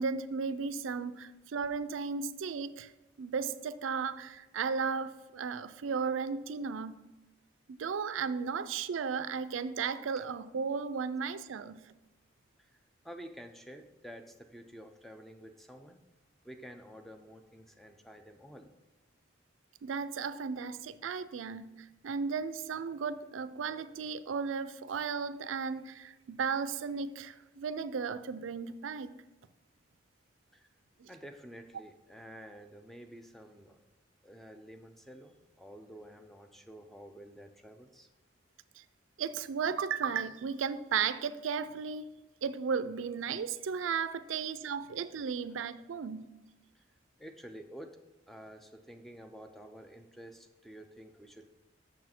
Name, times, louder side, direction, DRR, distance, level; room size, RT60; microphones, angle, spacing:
voice 1, 0.0-2.9 3.2-7.0 7.8-11.8 19.8-29.1 31.0-31.1 38.8-38.9 39.2-42.1 42.4-46.3, right 6 dB, 85° right, 13 dB, 0.4 m, -35 dB
voice 2, 13.0-16.0 16.4-18.7 30.5-30.7 31.1-33.8 34.2-38.1 44.3-44.5 46.7-46.8 47.2-48.0 48.3-51.5, equal, ahead, 6 dB, 0.4 m, -50 dB
6.7 x 6.3 x 4.3 m, 1.1 s
head